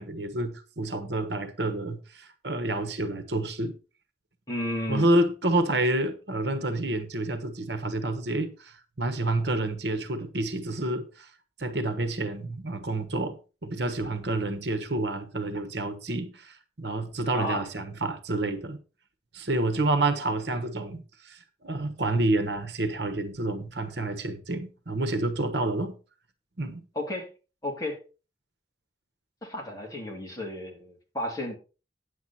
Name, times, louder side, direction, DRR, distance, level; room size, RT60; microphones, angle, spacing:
voice 1, 0.0-3.8 4.9-11.3 11.6-18.8 19.3-25.9 26.6-26.8, right 2 dB, 70° right, 1.3 m, -29 dB
voice 2, 4.5-5.1 17.3-17.7 26.9-27.3 27.6-28.0 29.4-31.5, left 1 dB, 20° left, 2.8 m, -32 dB
9.5 x 8.0 x 4.3 m
head